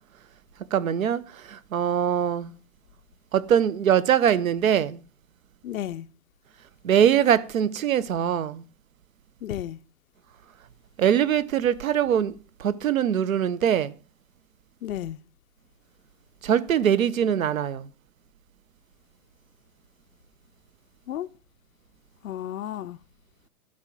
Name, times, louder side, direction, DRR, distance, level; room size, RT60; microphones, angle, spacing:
voice 1, 0.7-2.5 3.3-5.0 6.8-8.6 11.0-12.3 12.6-13.9 16.4-17.9, right 9 dB, 60° right, 0.8 m, -22 dB
voice 2, 5.6-6.1 9.4-9.8 14.8-15.2 21.1-21.3 22.2-23.0, left 11 dB, 65° left, 0.5 m, -32 dB
11.5 x 4.9 x 7.4 m
hypercardioid pair, 165°, 46 cm